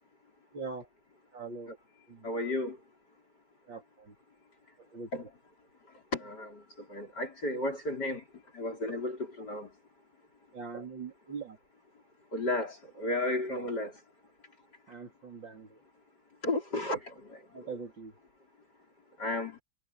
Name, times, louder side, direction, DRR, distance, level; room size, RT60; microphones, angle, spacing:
voice 1, 0.5-0.9 1.3-1.7 2.1-2.3 3.7-4.2 4.8-5.1 10.5-11.6 13.5-13.7 14.9-15.8 17.5-18.1, right 4 dB, 75° right, 4.1 m, -42 dB
voice 2, 2.2-2.8 5.1-5.2 6.1-6.6 6.9-8.2 8.5-9.7 12.3-13.9 16.4-17.7 19.2-19.6, left 1 dB, 60° left, 5.7 m, -33 dB
omnidirectional pair, 2.1 m